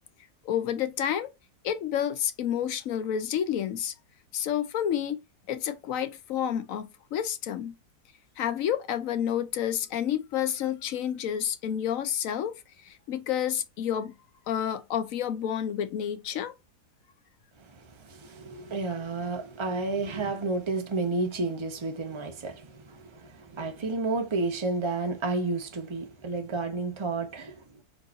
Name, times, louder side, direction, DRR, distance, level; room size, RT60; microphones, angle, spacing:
voice 1, 0.4-1.3 1.6-3.9 4.3-5.2 5.5-7.7 8.4-12.5 12.8-14.1 14.5-16.5, left 9 dB, 65° left, 1.0 m, -29 dB
voice 2, 17.6-27.8, right 3 dB, 25° right, 0.6 m, -31 dB
4.6 x 2.6 x 4.0 m
omnidirectional pair, 1.7 m